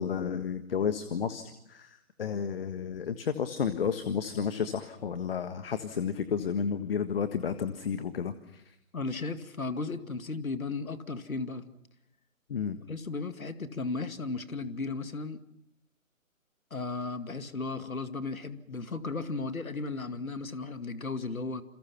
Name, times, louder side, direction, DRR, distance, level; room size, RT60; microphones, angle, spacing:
voice 1, 0.0-8.7 12.5-12.8, left 7 dB, 45° left, 10 dB, 1.6 m, -32 dB
voice 2, 8.9-11.7 12.9-15.4 16.7-21.6, left 3 dB, 75° left, 10 dB, 2.3 m, -35 dB
28.5 x 27.5 x 5.9 m, 0.80 s
figure-of-eight pair, 145°, 42 cm